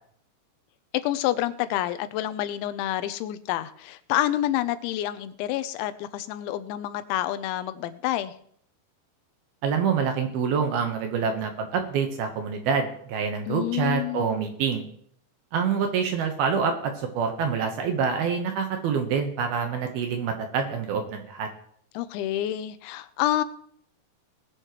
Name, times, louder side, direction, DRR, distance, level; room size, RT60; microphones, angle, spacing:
voice 1, 0.9-8.3 13.5-14.3 21.9-23.4, left 13 dB, 90° left, 12 dB, 3.0 m, -28 dB
voice 2, 9.6-14.9 15.5-21.5, right 6 dB, 70° right, 5 dB, 2.6 m, -26 dB
19.5 x 9.8 x 3.1 m, 0.64 s
omnidirectional pair, 5.3 m